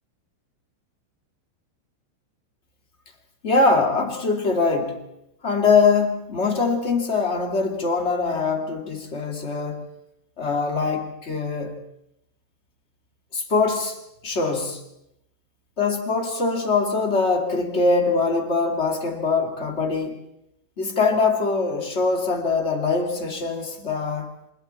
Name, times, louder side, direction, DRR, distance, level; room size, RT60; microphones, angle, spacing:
voice 1, 3.4-5.0 5.4-9.8 10.4-11.8 13.3-14.0 14.2-14.8 15.8-20.2 20.8-24.3, left 4 dB, 45° left, 3 dB, 0.8 m, -22 dB
29.5 x 27.0 x 4.3 m, 0.83 s
omnidirectional pair, 5.5 m